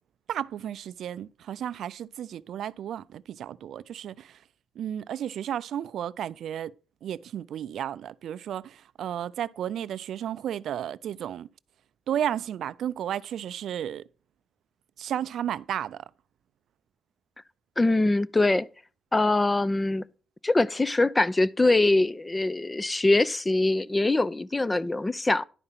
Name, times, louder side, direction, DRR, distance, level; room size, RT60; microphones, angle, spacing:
voice 1, 0.3-4.4 4.8-6.7 7.0-11.5 12.1-14.0 15.0-16.0, right 10 dB, 70° right, 0.3 m, -33 dB
voice 2, 17.8-18.7 19.1-20.0 20.4-25.4, left 2 dB, 20° left, 0.5 m, -23 dB
11.0 x 4.9 x 5.7 m
cardioid pair, 90°, 0 cm